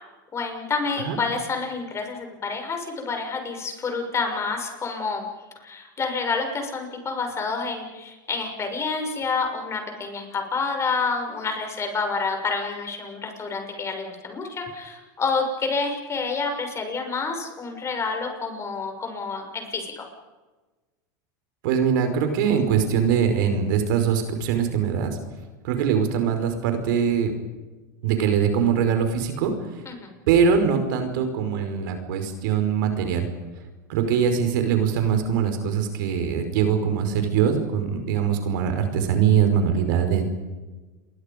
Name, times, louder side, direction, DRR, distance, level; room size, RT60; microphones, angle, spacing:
voice 1, 0.3-5.2 5.6-20.1 29.9-30.1, left 4 dB, 25° left, 4 dB, 6.5 m, -28 dB
voice 2, 21.6-25.1 25.6-27.3 28.0-29.5 30.3-33.3 33.9-40.2, right 7 dB, 75° right, 6 dB, 5.1 m, -22 dB
29.0 x 23.5 x 5.3 m, 1.2 s
supercardioid pair, 115°, 11 cm